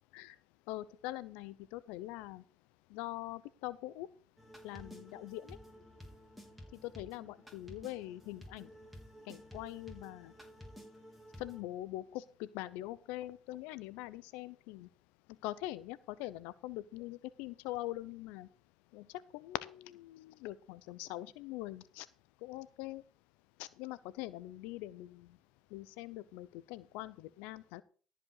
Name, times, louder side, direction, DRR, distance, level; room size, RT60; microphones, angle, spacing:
voice 1, 0.7-2.4 2.9-4.1 4.6-5.6 6.8-8.7 9.3-10.3 11.4-14.9 15.4-18.5 18.9-19.1 19.3-22.1 22.4-23.0 23.6-25.3 25.7-27.8, left 16 dB, 90° left, 17 dB, 0.6 m, -43 dB
sound 1, 4.4-11.6, equal, ahead, 3.6 m, -53 dB
13.5 x 5.1 x 6.5 m, 0.40 s
supercardioid pair, 70°, 2 cm